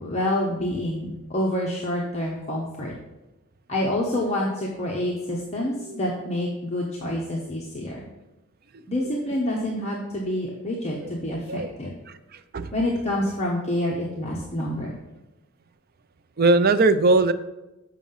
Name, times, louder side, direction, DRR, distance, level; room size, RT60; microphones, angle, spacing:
voice 1, 0.0-2.9 3.7-8.0 8.9-11.9 12.7-14.9, left 1 dB, 30° left, -3 dB, 0.9 m, -27 dB
voice 2, 12.3-12.7 16.4-17.3, right 2 dB, 45° right, 11 dB, 0.4 m, -19 dB
7.2 x 5.7 x 5.5 m, 1.0 s
head